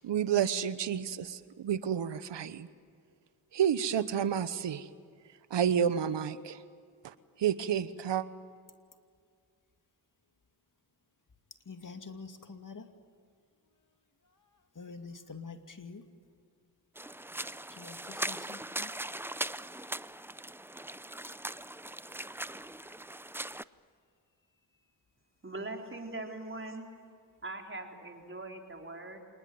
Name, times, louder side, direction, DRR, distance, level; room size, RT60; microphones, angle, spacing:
voice 1, 0.0-2.7 3.5-4.9 5.5-6.6 7.0-7.1 7.4-8.2, right 8 dB, 80° right, 14 dB, 1.1 m, -30 dB
voice 2, 11.7-12.9 14.7-16.0 17.7-18.9, left 4 dB, 45° left, 6 dB, 2.5 m, -46 dB
sound 1, 17.0-23.6, right 1 dB, 5° right, 0.6 m, -40 dB
voice 3, 25.4-26.9 27.4-29.2, right 2 dB, 30° right, 2 dB, 4.1 m, -41 dB
27.0 x 20.0 x 9.5 m, 2.1 s
cardioid pair, 50°, 43 cm